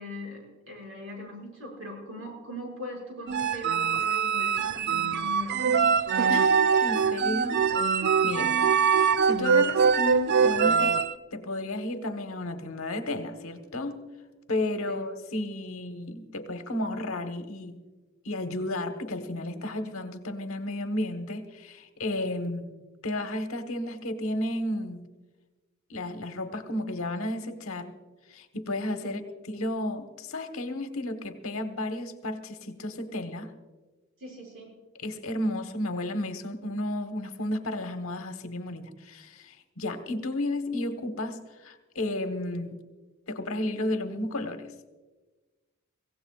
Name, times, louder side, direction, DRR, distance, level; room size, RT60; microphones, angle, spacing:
voice 1, 0.0-5.9 14.9-15.0 29.0-29.2 34.2-34.7, left 1 dB, 70° right, 0 dB, 5.6 m, -40 dB
sound 1, 3.3-11.1, right 6 dB, 55° right, 0.4 m, -23 dB
voice 2, 6.8-8.6 9.0-11.0 11.3-14.0 14.5-17.8 18.2-22.7 23.0-25.0 25.9-27.9 28.3-33.5 34.9-42.8 43.3-44.7, left 1 dB, 80° left, 8 dB, 1.2 m, -33 dB
24.0 x 16.0 x 2.4 m, 1.2 s
head